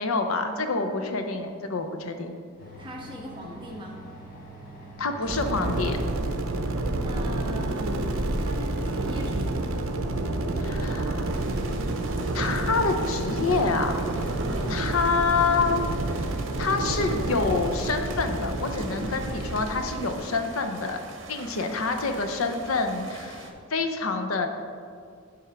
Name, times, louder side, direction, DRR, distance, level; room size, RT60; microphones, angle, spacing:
voice 1, 0.0-2.3 5.0-6.0 10.6-11.3 12.3-14.0 14.7-15.8 16.2-16.3 16.6-21.0 21.3-24.5, left 4 dB, 85° left, 6 dB, 0.7 m, -27 dB
sound 1, 2.6-8.8, equal, 45° left, 1.5 m, -44 dB
voice 2, 2.8-4.0 6.8-8.0 8.4-9.9 14.5-14.8, right 1 dB, 25° right, -2 dB, 1.1 m, -40 dB
sound 2, 5.3-20.2, right 2 dB, 80° right, 0.6 m, -29 dB
sound 3, 11.3-23.5, right 2 dB, 65° right, 1.0 m, -44 dB
10.0 x 3.6 x 5.7 m, 2.2 s
head